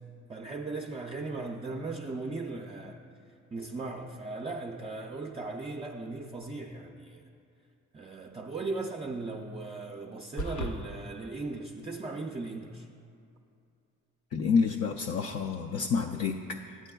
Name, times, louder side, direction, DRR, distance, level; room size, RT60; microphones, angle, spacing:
voice 1, 0.3-3.0 3.5-7.2 7.9-12.9, right 3 dB, 20° right, 0 dB, 0.4 m, -37 dB
sound 1, 10.4-10.8, equal, 75° left, 0.8 m, -33 dB
voice 2, 14.3-16.9, left 5 dB, 55° left, 4 dB, 0.4 m, -29 dB
11.5 x 9.1 x 2.3 m, 2.5 s
cardioid pair, 90°, 30 cm